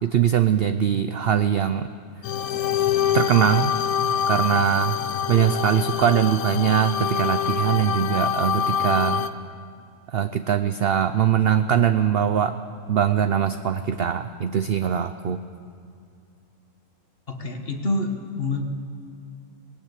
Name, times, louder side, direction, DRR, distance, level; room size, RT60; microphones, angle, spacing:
voice 1, 0.0-1.9 3.1-3.8 4.2-5.0 5.3-9.3 10.1-12.6 12.9-15.4, right 9 dB, 65° right, 10 dB, 0.6 m, -21 dB
sound 1, 2.2-9.3, left 8 dB, 70° left, 1.1 m, -25 dB
voice 2, 17.3-18.6, left 2 dB, 40° left, 5 dB, 1.5 m, -27 dB
19.0 x 18.0 x 8.2 m, 2.4 s
omnidirectional pair, 1.6 m